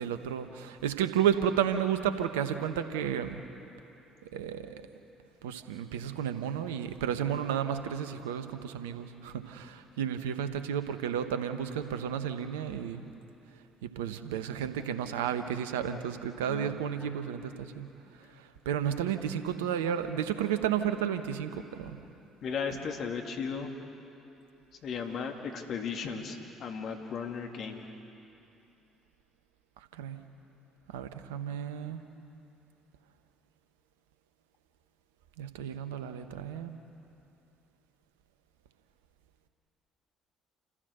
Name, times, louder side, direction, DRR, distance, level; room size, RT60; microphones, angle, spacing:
voice 1, 0.0-3.4 4.3-4.8 5.4-13.0 13.8-17.9 18.6-22.0 30.0-30.2 30.9-32.0 35.4-36.8, right 9 dB, 80° right, 9 dB, 1.1 m, -32 dB
voice 2, 16.4-16.8 22.4-23.7 24.8-27.9, left 6 dB, 55° left, 4 dB, 2.3 m, -36 dB
28.5 x 15.0 x 6.8 m, 2.8 s
hypercardioid pair, 55°, 0 cm